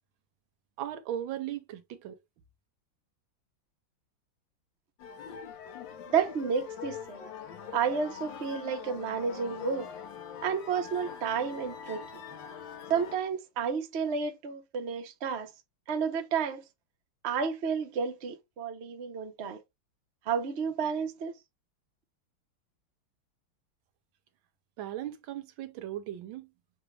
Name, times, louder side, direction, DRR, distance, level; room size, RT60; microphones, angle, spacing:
voice 1, 0.8-2.2 24.8-26.5, right 11 dB, 75° right, 1.4 m, -37 dB
sound 1, 5.0-13.2, left 7 dB, 70° left, 1.4 m, -43 dB
voice 2, 6.1-7.2 7.7-9.9 10.4-12.2 12.9-15.5 15.9-16.6 17.2-19.6 20.3-21.3, right 6 dB, 50° right, 0.8 m, -31 dB
6.5 x 2.4 x 3.2 m
omnidirectional pair, 2.2 m